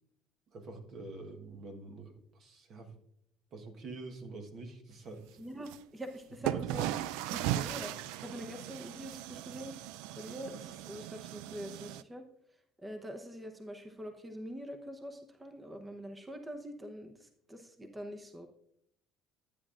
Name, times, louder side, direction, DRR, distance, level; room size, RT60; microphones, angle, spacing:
voice 1, 0.5-2.9 3.5-5.5 6.4-6.6, right 3 dB, 55° right, 4 dB, 1.3 m, -46 dB
voice 2, 5.4-6.9 7.3-9.8 10.1-12.2 12.8-18.5, equal, 15° right, 5 dB, 0.9 m, -44 dB
sound 1, 5.7-5.8 6.4-12.0, right 13 dB, 90° right, 0.3 m, -37 dB
12.0 x 8.6 x 2.5 m, 0.71 s
cardioid pair, 100°, 0 cm